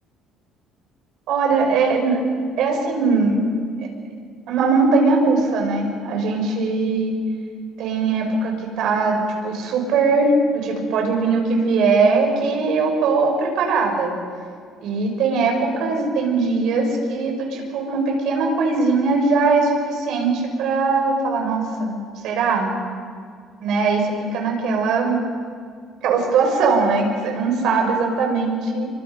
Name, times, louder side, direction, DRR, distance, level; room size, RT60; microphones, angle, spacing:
voice 1, 1.3-2.2 2.6-3.4 3.8-3.9 4.5-7.2 7.8-9.2 9.4-14.2 14.8-22.0 22.2-22.7 23.6-25.2 26.0-28.9, right 4 dB, 65° right, 1 dB, 5.7 m, -20 dB
29.0 x 24.5 x 5.3 m, 2.1 s
cardioid pair, 170°, 0 cm